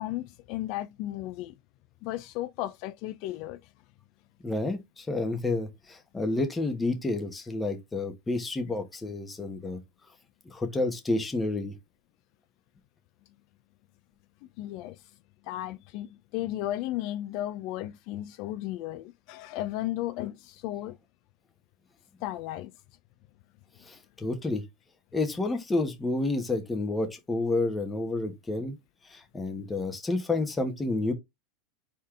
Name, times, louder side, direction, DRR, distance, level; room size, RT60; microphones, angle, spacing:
voice 1, 0.0-1.5 2.0-3.6 14.6-15.0 15.4-21.0 22.2-22.7, left 14 dB, 55° left, 0.4 m, -34 dB
voice 2, 4.4-9.8 10.4-11.8 23.8-24.6 25.1-28.8 29.1-31.1, left 2 dB, 15° left, 1.3 m, -30 dB
4.4 x 3.7 x 3.2 m
supercardioid pair, 135°, 0 cm